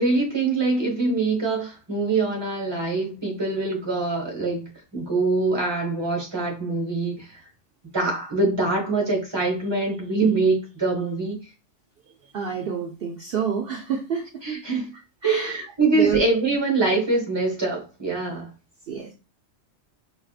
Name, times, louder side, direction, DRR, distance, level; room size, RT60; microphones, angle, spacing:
voice 1, 0.0-7.4 7.9-11.4 14.4-14.9 15.2-18.5, right 3 dB, 20° right, 1.1 m, -24 dB
voice 2, 12.3-14.3 15.2-15.5 15.9-16.2 18.9-19.1, right 6 dB, 60° right, 0.7 m, -27 dB
4.6 x 2.8 x 2.4 m
omnidirectional pair, 1.3 m